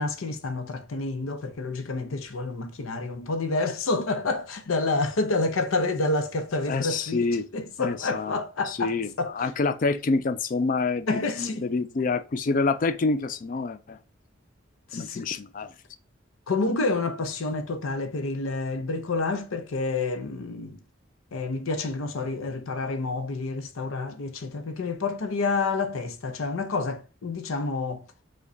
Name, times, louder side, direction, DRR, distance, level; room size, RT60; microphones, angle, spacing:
voice 1, 0.0-7.3 7.5-8.9 9.2-9.3 11.1-11.7 14.9-15.3 16.5-20.8 21.3-28.0, left 3 dB, 85° left, 0.7 m, -28 dB
voice 2, 6.7-7.5 7.8-11.1 11.4-14.0 14.9-15.7, left 3 dB, 40° left, 0.4 m, -27 dB
5.0 x 2.2 x 3.8 m
head